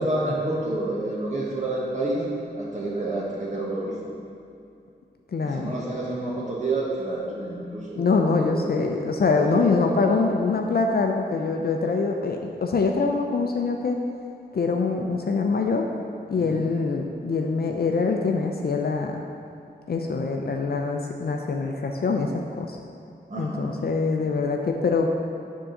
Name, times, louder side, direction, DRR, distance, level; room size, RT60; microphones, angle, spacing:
voice 1, 0.0-2.2 2.5-3.9 5.4-8.7 9.2-10.2 16.3-16.6 23.3-23.8, right 2 dB, 40° right, -6 dB, 1.3 m, -29 dB
voice 2, 5.3-5.7 8.0-14.0 14.5-15.9 16.3-19.2 19.9-22.8 23.4-25.1, left 4 dB, 60° left, 2 dB, 0.5 m, -24 dB
7.6 x 3.7 x 6.4 m, 2.5 s
wide cardioid pair, 120°, 18 cm